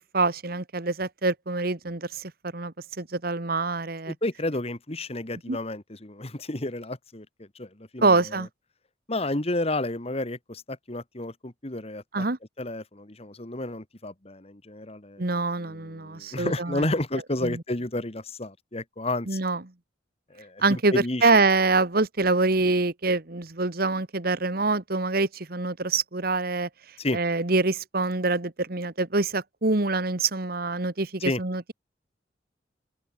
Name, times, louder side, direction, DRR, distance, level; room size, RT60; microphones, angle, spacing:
voice 1, 0.1-4.1 5.5-5.6 8.0-8.5 12.1-12.4 15.2-16.8 17.4-17.6 19.3-19.6 20.6-20.9 21.2-26.7 27.1-31.7, right 3 dB, 55° right, 1.5 m, -25 dB
voice 2, 4.1-8.5 9.1-12.3 12.6-19.4 20.3-21.3 27.0-27.2 31.2-31.4, left 2 dB, 35° left, 1.8 m, -31 dB
open air
head